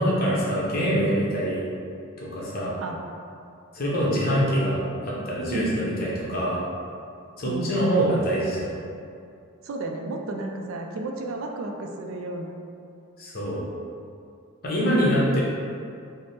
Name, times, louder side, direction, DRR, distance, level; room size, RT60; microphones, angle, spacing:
voice 1, 0.0-1.6 2.2-2.8 3.7-6.6 7.4-8.7 13.2-13.6 14.6-15.4, equal, 45° left, -6 dB, 0.7 m, -24 dB
voice 2, 7.4-7.7 9.6-12.5 14.7-15.0, right 2 dB, 70° right, 2 dB, 0.3 m, -33 dB
3.3 x 2.0 x 4.1 m, 2.5 s
head